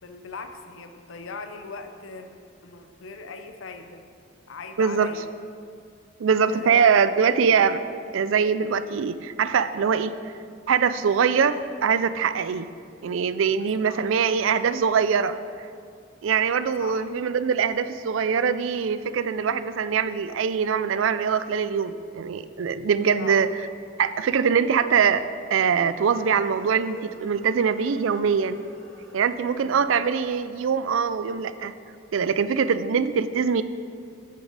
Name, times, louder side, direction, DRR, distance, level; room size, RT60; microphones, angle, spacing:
voice 1, 0.0-4.1 4.5-5.3 6.5-7.0 13.5-14.0 16.8-17.1 23.2-23.4 29.6-29.9, left 4 dB, 80° left, 7 dB, 0.7 m, -40 dB
voice 2, 4.8-5.1 6.2-7.8 8.1-10.1 10.7-12.7 13.0-15.4 16.2-23.5 24.0-25.2 25.5-28.6 29.1-31.7 32.1-33.6, right 6 dB, 80° right, 14 dB, 0.4 m, -23 dB
sound 1, 26.0-31.5, right 1 dB, 15° left, 2.0 m, -50 dB
9.3 x 8.3 x 4.0 m, 2.2 s
head